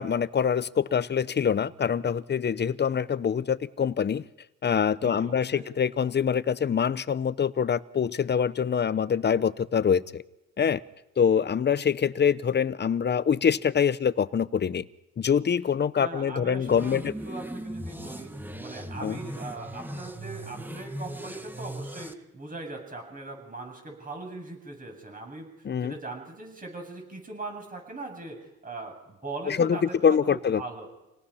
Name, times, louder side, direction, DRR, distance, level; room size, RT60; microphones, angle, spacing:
voice 1, 0.0-4.2 4.6-10.2 10.6-10.8 11.2-14.8 15.2-17.1 19.0-19.2 25.6-25.9 29.5-30.6, left 7 dB, 35° left, 16 dB, 0.8 m, -25 dB
voice 2, 5.0-5.7 16.0-30.9, right 2 dB, 30° right, 3 dB, 7.7 m, -40 dB
sound 1, 16.7-22.1, right 1 dB, 5° right, 1.5 m, -38 dB
27.5 x 18.5 x 5.7 m, 0.96 s
cardioid pair, 90°, 30 cm